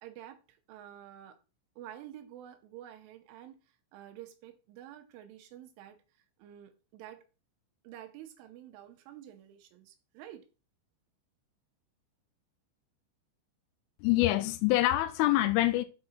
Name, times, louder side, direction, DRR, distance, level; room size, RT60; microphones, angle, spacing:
voice 1, 0.0-1.4 1.8-7.2 7.8-10.5, right 11 dB, 85° right, 3.1 m, -49 dB
voice 2, 14.0-15.8, left 16 dB, 85° left, 3.0 m, -25 dB
7.8 x 4.6 x 4.3 m
omnidirectional pair, 5.9 m